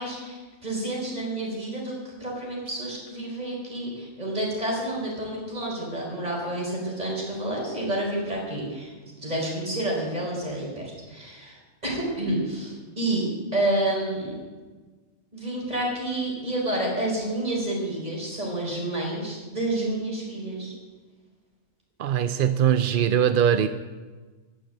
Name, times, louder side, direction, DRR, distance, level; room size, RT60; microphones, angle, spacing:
voice 1, 0.0-8.9 9.2-14.4 15.3-20.7, right 1 dB, 30° right, -2 dB, 4.7 m, -29 dB
voice 2, 22.0-23.7, right 9 dB, 60° right, 11 dB, 0.6 m, -21 dB
11.5 x 10.0 x 8.8 m, 1.4 s
omnidirectional pair, 1.4 m